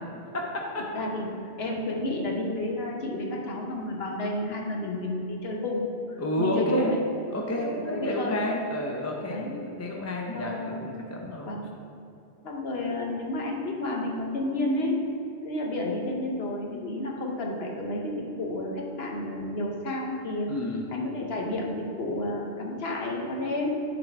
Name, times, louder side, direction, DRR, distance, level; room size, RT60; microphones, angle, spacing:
voice 1, 0.3-0.9 6.2-7.0 7.3-11.5 20.5-20.8, left 1 dB, 20° left, -1 dB, 0.5 m, -30 dB
voice 2, 0.9-7.0 7.7-8.4 9.3-9.6 10.3-10.9 11.4-11.7 12.4-15.0 15.4-20.5 20.9-23.7, left 2 dB, 65° left, 0 dB, 1.1 m, -31 dB
10.5 x 4.1 x 3.4 m, 2.7 s
omnidirectional pair, 1.2 m